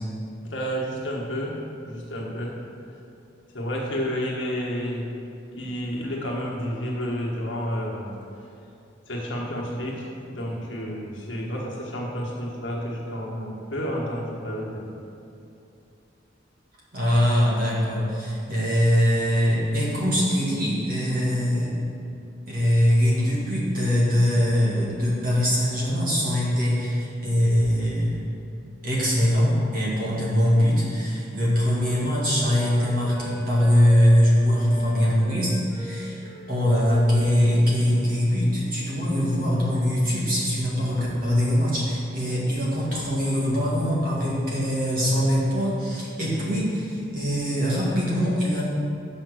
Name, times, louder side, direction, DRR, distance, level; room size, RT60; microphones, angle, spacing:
voice 1, 0.4-2.5 3.5-5.1 5.5-8.1 9.1-15.0, equal, 85° left, -3 dB, 1.5 m, -30 dB
voice 2, 16.9-21.7 22.5-28.2 28.8-48.6, equal, 50° right, -6 dB, 1.9 m, -22 dB
Wind instrument woodwind instrument, 30.5-34.4 34.7-38.2 38.5-39.1, equal, 10° left, 1.3 m, -42 dB
5.9 x 5.7 x 6.3 m, 2.6 s
head